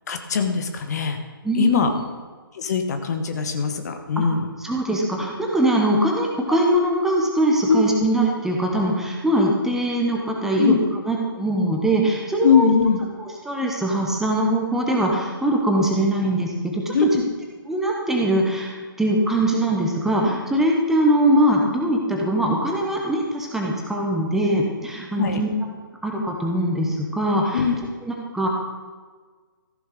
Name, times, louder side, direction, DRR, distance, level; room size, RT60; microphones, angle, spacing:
voice 1, 0.1-1.2 1.5-1.9 2.5-4.5 7.7-7.8 10.6-10.8 12.4-13.0 16.9-17.0 25.2-25.4 27.5-27.8, left 6 dB, 45° left, 6 dB, 1.2 m, -21 dB
voice 2, 1.4-1.9 4.2-4.3 4.6-10.8 11.1-12.7 13.4-17.1 17.7-25.5 26.0-27.6 28.1-28.5, right 1 dB, 5° right, -1 dB, 1.2 m, -22 dB
14.5 x 6.9 x 5.1 m, 1.5 s
figure-of-eight pair, 135°, 12 cm